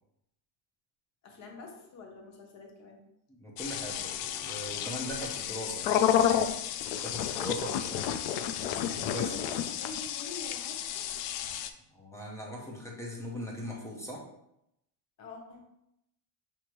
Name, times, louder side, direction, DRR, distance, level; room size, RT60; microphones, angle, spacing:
voice 1, 1.2-3.1 7.7-8.1 8.7-11.1 15.2-15.7, left 3 dB, 35° left, 2 dB, 0.8 m, -46 dB
voice 2, 3.3-6.4 7.0-8.0 8.6-9.3 11.9-14.2, equal, 5° left, -2 dB, 0.6 m, -40 dB
sound 1, 3.6-11.7, left 9 dB, 75° left, 0.5 m, -31 dB
6.3 x 2.8 x 3.0 m, 0.81 s
cardioid pair, 170°, 47 cm